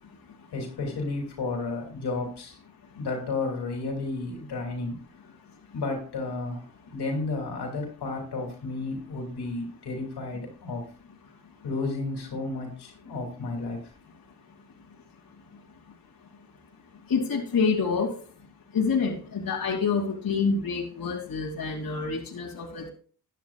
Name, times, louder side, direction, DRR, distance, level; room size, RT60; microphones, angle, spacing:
voice 1, 0.5-2.6 3.0-5.0 5.7-10.8 11.6-13.8, left 3 dB, 75° left, 2 dB, 2.9 m, -32 dB
voice 2, 17.1-18.1 18.7-22.9, left 5 dB, 60° left, -2 dB, 2.7 m, -27 dB
12.5 x 10.0 x 2.4 m, 0.42 s
cardioid pair, 65°, 40 cm